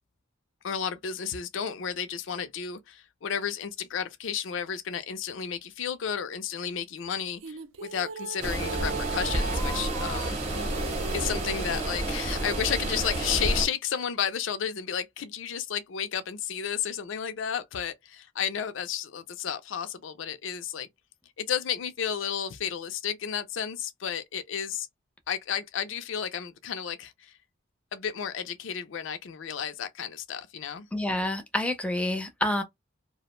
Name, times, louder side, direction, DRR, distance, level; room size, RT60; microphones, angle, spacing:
voice 1, 0.6-10.4 11.1-20.9 21.4-24.9 25.3-27.4 27.9-30.9, left 8 dB, 80° left, 0.4 m, -32 dB
sound 1, 7.4-11.9, right 4 dB, 85° right, 0.4 m, -38 dB
sound 2, 8.4-13.7, right 1 dB, 35° right, 0.7 m, -30 dB
voice 2, 30.9-32.6, left 1 dB, 5° left, 0.4 m, -28 dB
2.4 x 2.0 x 2.9 m
head